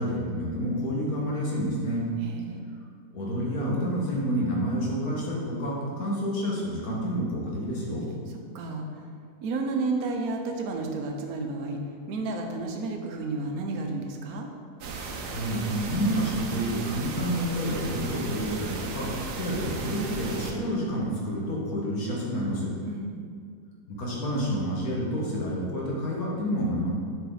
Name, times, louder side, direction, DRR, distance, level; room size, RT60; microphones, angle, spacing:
voice 1, 0.0-2.1 3.1-8.0 15.3-19.1 19.4-22.7 23.9-26.9, equal, 65° left, -4 dB, 1.9 m, -29 dB
voice 2, 2.2-2.6 8.5-9.1 9.4-11.8 12.1-14.5 22.8-23.3, right 3 dB, 70° right, 2 dB, 1.2 m, -31 dB
sound 1, 14.8-20.5, right 4 dB, 90° right, 1.3 m, -36 dB
7.1 x 5.1 x 3.9 m, 2.1 s
omnidirectional pair, 1.7 m